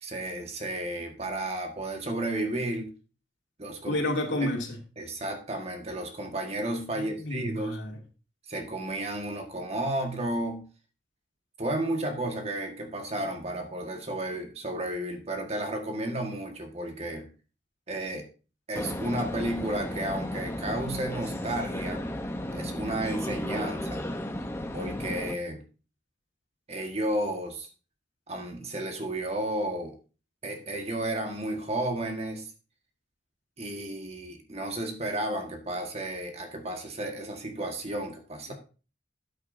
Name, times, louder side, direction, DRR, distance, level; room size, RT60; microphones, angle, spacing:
voice 1, 0.0-2.9 3.6-4.0 4.4-4.5 5.0-7.8 8.5-10.6 11.6-17.3 17.9-18.2 18.7-22.0 22.5-24.0 24.7-25.6 26.7-27.7 28.3-29.9 30.4-32.5 33.6-38.5, right 1 dB, 35° right, 4 dB, 1.6 m, -32 dB
voice 2, 3.9-4.8 6.9-8.0 38.5-38.6, left 1 dB, 80° left, 1 dB, 2.6 m, -30 dB
sound 1, 18.7-25.3, left 1 dB, 15° left, 0.8 m, -34 dB
13.5 x 8.5 x 2.7 m, 0.35 s
head